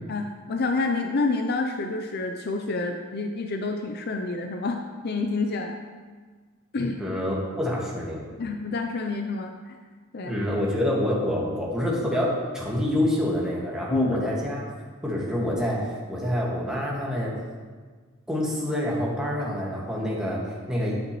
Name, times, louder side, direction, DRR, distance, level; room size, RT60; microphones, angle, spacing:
voice 1, 0.1-4.8 5.0-5.8 6.7-7.0 8.4-9.8 10.1-10.4 13.9-14.2, left 3 dB, 50° left, 4 dB, 0.5 m, -28 dB
voice 2, 7.0-8.3 10.2-14.7 15.0-17.4 18.3-21.0, left 1 dB, 5° right, -5 dB, 1.7 m, -27 dB
10.5 x 7.7 x 3.1 m, 1.5 s
head